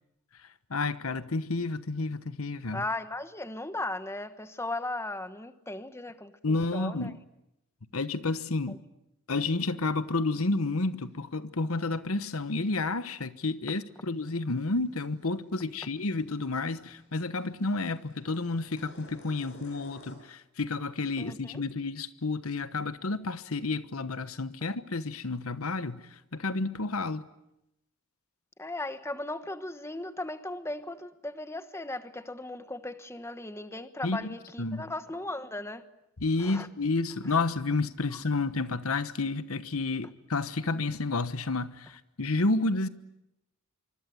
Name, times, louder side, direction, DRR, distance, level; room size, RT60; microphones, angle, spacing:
voice 1, 0.7-2.8 6.4-7.2 7.9-8.8 9.3-27.3 34.0-34.3 34.6-34.8 36.2-42.9, left 3 dB, 75° left, 1.2 m, -30 dB
voice 2, 2.7-6.4 6.7-7.1 8.7-8.8 21.2-21.6 28.6-35.8 36.4-36.7 37.2-37.4 38.1-38.2, left 2 dB, 10° left, 1.2 m, -37 dB
sound 1, 10.7-10.9 11.2-11.3 13.7-20.2, equal, 55° left, 6.5 m, -56 dB
25.0 x 25.0 x 9.3 m
head